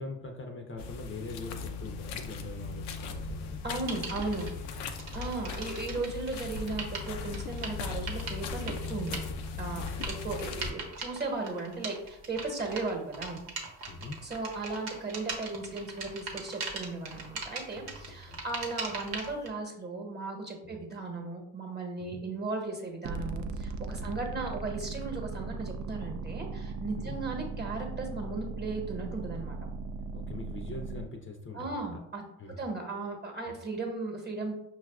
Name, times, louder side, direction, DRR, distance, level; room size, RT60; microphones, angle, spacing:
voice 1, 0.0-3.6 4.8-4.9 9.8-9.9 13.9-14.2 17.8-18.4 20.6-20.8 22.0-22.2 24.0-24.2 26.9-27.2 30.1-31.9 32.4-32.6 33.5-33.6, left 2 dB, 30° left, 3 dB, 0.6 m, -43 dB
sound 1, 0.8-10.7, left 4 dB, 80° left, 0.5 m, -38 dB
voice 2, 3.6-4.5 5.1-9.3 9.6-13.4 14.2-29.6 31.5-32.2 32.6-34.5, right 3 dB, 25° right, 1 dB, 1.1 m, -36 dB
sound 2, 3.9-4.5 5.0-19.5, right 4 dB, 70° right, 0.9 m, -40 dB
sound 3, 23.0-31.1, right 4 dB, 50° right, 0.4 m, -38 dB
5.6 x 2.4 x 2.3 m, 0.85 s
hypercardioid pair, 60°, 39 cm